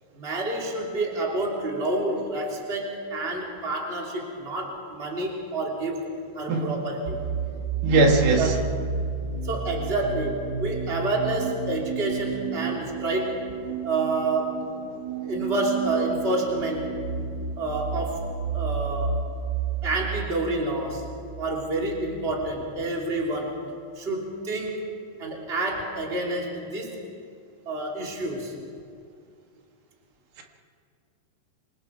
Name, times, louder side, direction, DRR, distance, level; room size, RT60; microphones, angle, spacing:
voice 1, 0.1-7.2 8.4-8.5 9.4-13.4 13.8-14.6 15.2-16.9 17.6-19.3 19.8-21.1 21.4-23.6 24.0-24.9 25.2-27.0 27.6-28.5, right 2 dB, 15° right, -1 dB, 2.9 m, -28 dB
sound 1, 7.1-22.6, right 6 dB, 40° right, 1.5 m, -32 dB
voice 2, 7.8-8.5, right 2 dB, 70° right, 2 dB, 3.4 m, -19 dB
26.5 x 26.0 x 4.7 m, 2.4 s
omnidirectional pair, 4.5 m